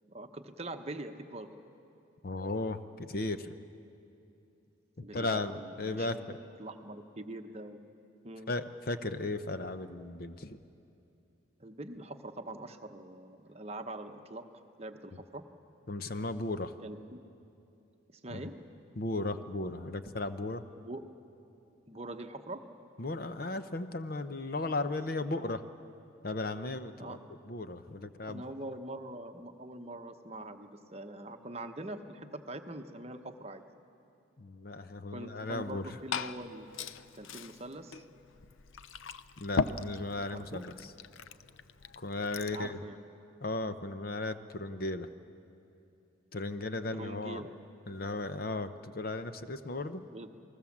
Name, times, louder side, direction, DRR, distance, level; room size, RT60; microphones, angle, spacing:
voice 1, 0.1-1.5 5.0-7.8 8.2-8.5 11.6-14.4 14.8-15.4 16.8-17.2 18.1-18.6 20.8-21.0 21.9-22.6 27.0-27.2 28.3-33.6 35.1-36.7 37.1-38.0 40.3-40.6 42.5-43.0 46.9-47.5 50.1-50.3, right 1 dB, 30° right, 6 dB, 1.0 m, -43 dB
voice 2, 2.2-3.6 5.0-6.4 8.5-10.6 15.9-16.8 18.3-18.4 19.0-20.7 23.0-25.7 26.2-27.2 27.4-28.4 34.4-36.0 39.4-40.7 42.0-42.8 43.4-45.1 46.3-47.4 47.9-50.1, left 2 dB, 45° left, 10 dB, 0.8 m, -36 dB
Glass / Fill (with liquid), 35.6-42.7, left 4 dB, 80° left, 0.6 m, -39 dB
28.5 x 20.0 x 7.4 m, 2.7 s
head